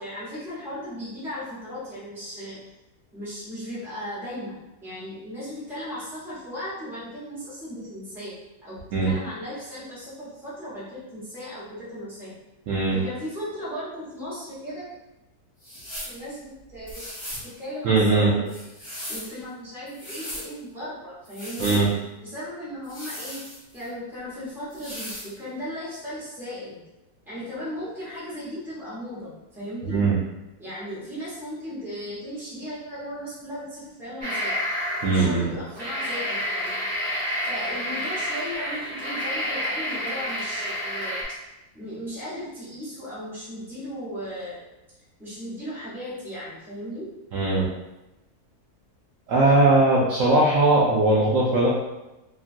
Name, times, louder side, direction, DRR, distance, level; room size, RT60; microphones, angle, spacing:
voice 1, 0.0-2.6 3.1-8.3 8.6-12.4 12.9-14.9 16.1-17.0 17.4-21.8 22.2-23.5 23.7-26.8 27.3-30.0 30.6-34.6 35.1-36.9 37.4-41.2 41.7-44.6 45.2-47.1, equal, ahead, -10 dB, 0.9 m, -36 dB
voice 2, 12.7-13.0 17.8-18.3 21.6-21.9 29.9-30.2 35.0-35.5 47.3-47.7 49.3-51.7, right 2 dB, 70° right, -6 dB, 0.8 m, -19 dB
sound 1, 15.6-16.2 16.9-17.5 18.5-19.3 19.9-20.5 21.2-21.8 22.8-23.9 24.7-25.3, left 1 dB, 25° left, 1.6 m, -37 dB
sound 2, 34.2-35.2 35.6-41.2, equal, 35° right, 0.9 m, -29 dB
2.9 x 2.4 x 2.5 m, 0.98 s
omnidirectional pair, 1.6 m